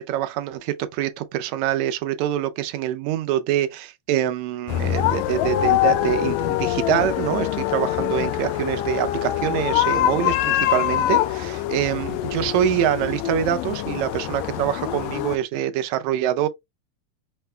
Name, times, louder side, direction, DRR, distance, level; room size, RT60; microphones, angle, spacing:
voice 1, 0.0-16.5, right 11 dB, 80° right, 1.9 m, -25 dB
sound 1, 4.7-15.4, left 13 dB, 80° left, 1.8 m, -24 dB
6.0 x 2.2 x 3.2 m
omnidirectional pair, 3.3 m